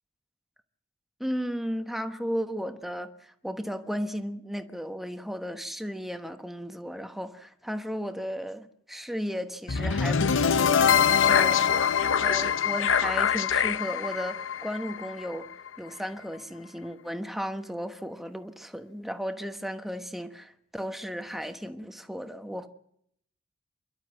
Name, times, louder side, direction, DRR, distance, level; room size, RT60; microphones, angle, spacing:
voice 1, 1.2-10.8 11.2-15.5 15.8-22.7, equal, ahead, 1.2 m, -35 dB
sound 1, 9.7-15.7, left 7 dB, 65° left, 0.7 m, -24 dB
28.5 x 12.0 x 7.8 m
head